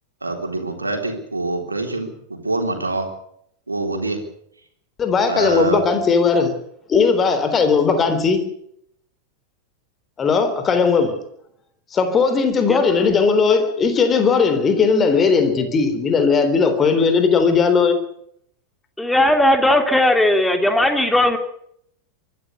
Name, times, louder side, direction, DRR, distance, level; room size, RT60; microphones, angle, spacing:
voice 1, 0.2-3.1 3.7-4.2 5.3-6.0, right 2 dB, 80° right, 3.7 m, -25 dB
voice 2, 5.0-6.6 6.9-8.5 10.2-11.2 11.9-18.0, left 5 dB, 25° left, 3.7 m, -17 dB
voice 3, 19.0-21.4, left 1 dB, 5° left, 3.1 m, -17 dB
24.0 x 13.5 x 8.2 m
figure-of-eight pair, 90°, 0 cm